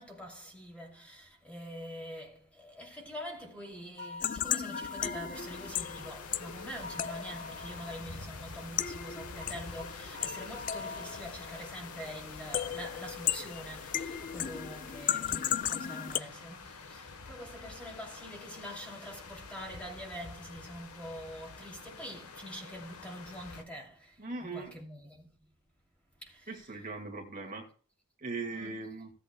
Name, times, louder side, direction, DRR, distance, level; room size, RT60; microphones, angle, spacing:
voice 1, 0.0-25.5 26.2-26.7 28.5-28.8, equal, 5° left, 2.6 m, -45 dB
sound 1, 4.0-6.1 6.8-8.1 9.4-11.6, left 3 dB, 60° right, 1.5 m, -46 dB
sound 2, 4.2-16.2, left 10 dB, 35° left, 0.3 m, -36 dB
sound 3, 5.3-23.6, left 4 dB, 80° left, 1.2 m, -48 dB
voice 2, 24.2-24.8 26.5-27.7 28.2-29.1, right 3 dB, 35° right, 2.0 m, -39 dB
16.0 x 8.3 x 2.2 m
head